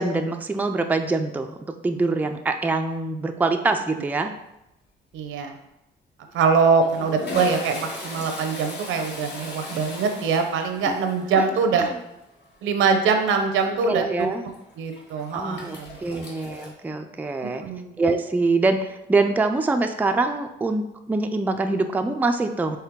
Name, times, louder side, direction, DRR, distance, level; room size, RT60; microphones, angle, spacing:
voice 1, 0.0-4.3 10.9-11.0 11.4-11.5 11.8-12.0 13.8-14.5 15.3-17.6 18.0-22.8, right 3 dB, 10° right, 6 dB, 0.3 m, -24 dB
Toilet flush, 4.5-4.9 5.1-5.3 6.3-16.7, left 1 dB, 60° left, 1.2 m, -38 dB
voice 2, 5.1-5.6 6.3-11.9 12.6-14.3 14.8-16.0 17.6-18.0, right 5 dB, 80° right, 6 dB, 0.7 m, -23 dB
4.5 x 3.3 x 3.6 m, 0.88 s
cardioid pair, 90°, 20 cm